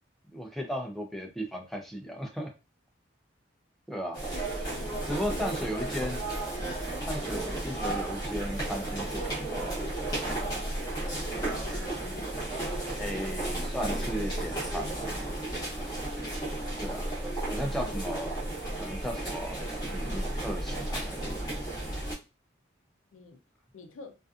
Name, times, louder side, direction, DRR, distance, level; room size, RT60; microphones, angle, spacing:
voice 1, 0.3-2.5 3.9-4.2 5.0-6.2 7.0-9.8 13.0-15.2 16.8-17.0 17.4-18.3 18.8-19.6 19.9-21.5, equal, ahead, 0 dB, 0.4 m, -36 dB
sound 1, 4.1-22.1, right 1 dB, 20° left, 0.7 m, -33 dB
voice 2, 4.7-5.5 11.4-11.8 17.6-18.1 23.1-23.4 23.7-24.2, left 3 dB, 90° left, 6 dB, 0.5 m, -48 dB
2.5 x 2.4 x 2.4 m, 0.29 s
head